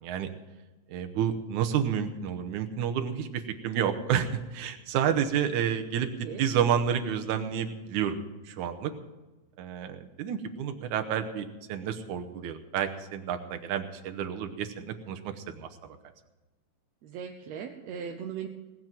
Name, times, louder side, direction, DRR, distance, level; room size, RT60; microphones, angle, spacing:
voice 1, 0.9-6.1 6.4-8.9 9.6-15.7, right 8 dB, 90° right, 6 dB, 2.4 m, -30 dB
voice 2, 6.0-6.4 17.0-18.5, right 7 dB, 70° right, 3 dB, 2.0 m, -38 dB
19.0 x 7.5 x 7.7 m, 1.1 s
omnidirectional pair, 3.4 m